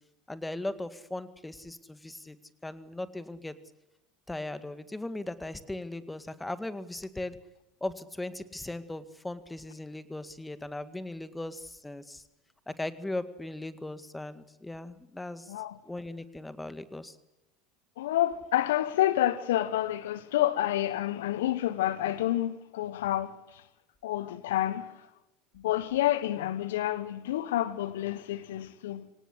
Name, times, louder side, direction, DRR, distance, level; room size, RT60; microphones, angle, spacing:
voice 1, 0.3-2.4 2.6-3.5 4.3-7.4 7.8-12.2 12.7-15.5 15.9-17.2, left 2 dB, 10° left, 2.0 m, -38 dB
voice 2, 15.5-15.8 18.0-23.6 24.0-24.9 25.5-29.1, left 13 dB, 70° left, 1.2 m, -29 dB
24.5 x 18.5 x 8.4 m
hypercardioid pair, 75°, 0 cm